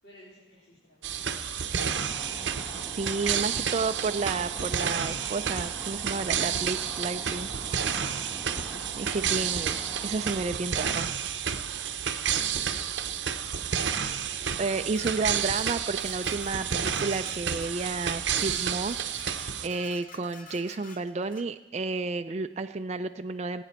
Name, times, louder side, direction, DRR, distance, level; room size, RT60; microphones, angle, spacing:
voice 1, 0.0-1.9 12.6-13.1, left 1 dB, 60° left, -9 dB, 4.0 m, -56 dB
sound 1, 1.0-19.7, right 8 dB, 70° right, 0.7 m, -30 dB
sound 2, 1.8-10.6, right 1 dB, 25° left, 1.6 m, -44 dB
voice 2, 3.0-7.5 8.9-9.8 10.0-11.1 14.6-19.0 19.2-23.6, right 3 dB, 35° right, 8 dB, 0.3 m, -31 dB
Dishes pots and pans, 13.8-21.5, left 4 dB, 45° left, 0.8 m, -50 dB
20.5 x 9.1 x 4.4 m, 1.0 s
head